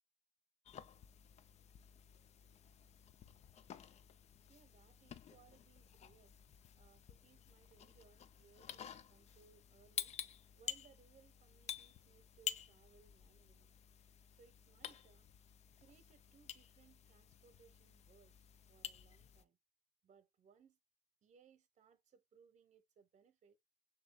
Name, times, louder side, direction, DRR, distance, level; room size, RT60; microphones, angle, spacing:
sound 1, 0.7-19.4, left 9 dB, 40° left, 0.4 m, -51 dB
voice 1, 4.5-6.4 6.8-10.2 10.5-13.7 14.4-15.3 15.8-18.4 18.7-19.6 20.0-20.8 21.2-23.6, right 6 dB, 45° right, 0.8 m, -68 dB
6.8 x 2.8 x 2.2 m
cardioid pair, 110°, 17 cm